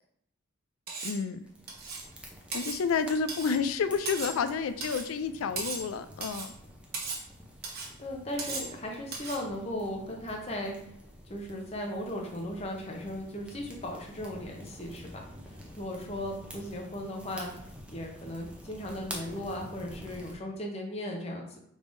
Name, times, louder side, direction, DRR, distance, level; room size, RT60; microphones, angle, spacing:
Cutlery silverware, 0.9-1.2 1.7-2.1 2.5-2.8 3.3-3.6 4.1-4.4 4.8-5.1 5.6-5.9 6.2-6.5 6.9-7.2 7.6-7.9 8.4-8.7 9.1-9.4, right 4 dB, 45° right, 0.7 m, -37 dB
voice 1, 1.0-1.4 2.5-6.5, left 5 dB, 85° left, 11 dB, 0.4 m, -30 dB
sound 1, 1.4-20.3, equal, 5° right, 0.5 m, -48 dB
voice 2, 8.0-10.9 11.2-17.5 17.9-21.6, left 1 dB, 30° left, 1 dB, 0.7 m, -37 dB
5.0 x 3.5 x 2.6 m, 0.72 s
head